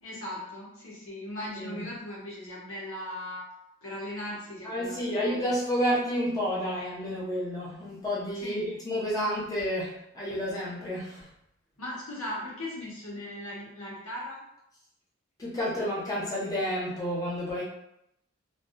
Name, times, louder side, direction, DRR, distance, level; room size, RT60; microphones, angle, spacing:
voice 1, 0.0-3.4 3.8-5.5 8.4-8.6 11.8-14.4, left 1 dB, 85° left, -5 dB, 1.2 m, -38 dB
voice 2, 1.6-1.9 4.6-11.3 15.4-17.6, equal, 15° left, -7 dB, 0.7 m, -30 dB
3.4 x 2.3 x 2.6 m, 0.80 s
head